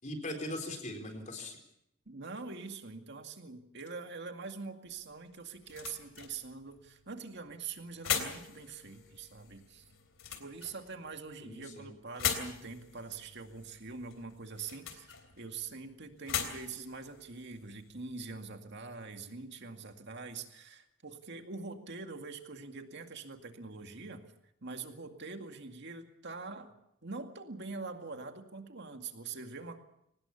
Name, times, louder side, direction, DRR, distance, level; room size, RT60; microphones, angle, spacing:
voice 1, 0.0-1.6 11.4-11.9, left 1 dB, 35° left, 4 dB, 4.1 m, -40 dB
voice 2, 2.1-9.8 10.4-24.2 24.6-26.8 27.0-29.8, right 4 dB, 55° right, 6 dB, 2.1 m, -44 dB
sound 1, 4.9-18.4, left 8 dB, 65° left, 3.4 m, -41 dB
23.5 x 19.5 x 7.1 m, 0.78 s
head